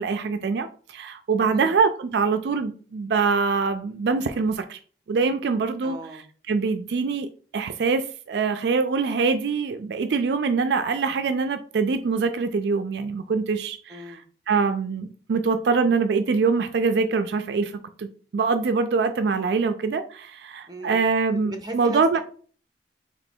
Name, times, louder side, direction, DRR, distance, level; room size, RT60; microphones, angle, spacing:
voice 1, 0.0-4.8 5.1-6.0 6.5-14.0 14.5-17.7 18.0-18.1 18.3-22.2, right 4 dB, 65° right, 0.3 m, -24 dB
voice 2, 1.4-1.7 5.8-6.2 13.9-14.2 20.7-21.1 21.4-22.2, right 1 dB, 20° right, 0.6 m, -38 dB
3.1 x 3.0 x 4.3 m
head